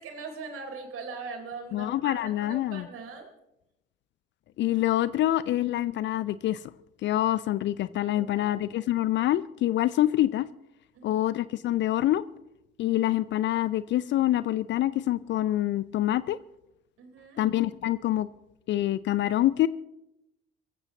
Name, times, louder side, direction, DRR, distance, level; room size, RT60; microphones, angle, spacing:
voice 1, 0.0-3.3 8.1-8.8 10.9-11.2 17.0-17.4, right 4 dB, 50° right, 4 dB, 3.9 m, -41 dB
voice 2, 1.7-2.9 4.6-6.6 7.0-10.5 11.0-12.2 12.8-16.4 17.4-18.3 18.7-19.7, left 14 dB, 40° left, 18 dB, 0.5 m, -26 dB
28.5 x 15.5 x 2.9 m, 0.88 s
figure-of-eight pair, 50°, 29 cm